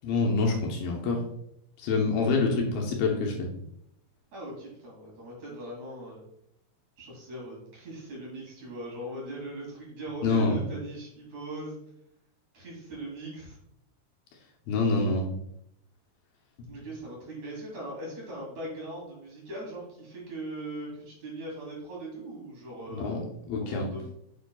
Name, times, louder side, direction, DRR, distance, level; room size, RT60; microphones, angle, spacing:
voice 1, 0.0-1.2 1.8-3.5 10.2-10.6 14.7-15.2 16.6-16.7 22.9-23.2 23.5-23.9, left 3 dB, 75° left, 0 dB, 2.6 m, -26 dB
voice 2, 4.3-6.2 7.0-11.8 12.5-13.6 16.7-23.2 23.6-24.1, right 1 dB, 50° right, -4 dB, 3.7 m, -40 dB
7.6 x 7.6 x 2.3 m, 0.77 s
omnidirectional pair, 4.6 m